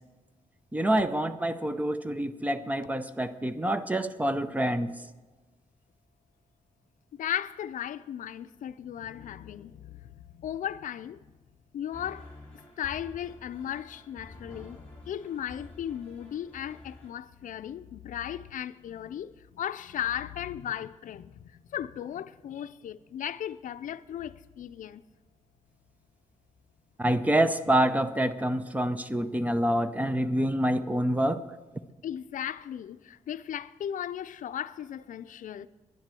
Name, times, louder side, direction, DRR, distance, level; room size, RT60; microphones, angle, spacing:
voice 1, 0.7-4.9 27.0-31.4, right 1 dB, 10° right, 0.5 m, -27 dB
voice 2, 7.1-11.2 11.7-12.3 12.8-21.4 21.7-25.0 32.0-35.7, left 10 dB, 85° left, 0.4 m, -36 dB
sound 1, 11.9-17.1, left 2 dB, 10° left, 2.9 m, -49 dB
10.5 x 10.5 x 7.6 m
wide cardioid pair, 165°, 13 cm